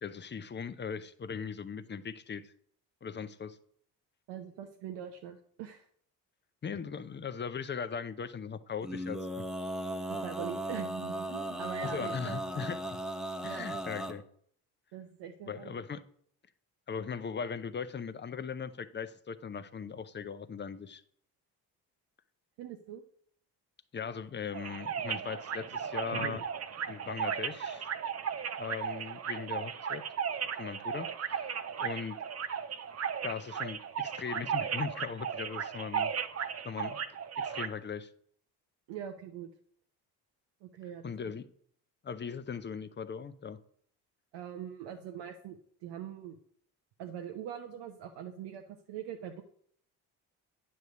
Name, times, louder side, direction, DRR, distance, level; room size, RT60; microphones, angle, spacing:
voice 1, 0.0-2.5 3.0-3.6 6.6-9.4 11.8-13.0 13.4-14.2 15.5-16.0 16.9-21.0 23.9-26.4 26.9-27.9 28.6-30.0 30.6-31.5 31.8-32.2 33.2-36.1 36.6-37.0 37.4-38.1 41.0-41.5 42.0-43.6, left 6 dB, 25° left, 0.6 m, -39 dB
voice 2, 4.3-5.9 10.1-12.4 13.5-13.6 14.9-15.8 22.6-23.0 26.1-26.4 38.9-39.5 40.6-41.1 44.3-45.6 45.8-46.4 47.0-49.4, right 9 dB, 65° right, 0.8 m, -42 dB
Male singing, 8.8-14.1, right 1 dB, ahead, 0.9 m, -37 dB
sound 1, 24.5-37.7, right 7 dB, 35° right, 0.7 m, -36 dB
9.1 x 3.3 x 6.8 m
hypercardioid pair, 50°, 46 cm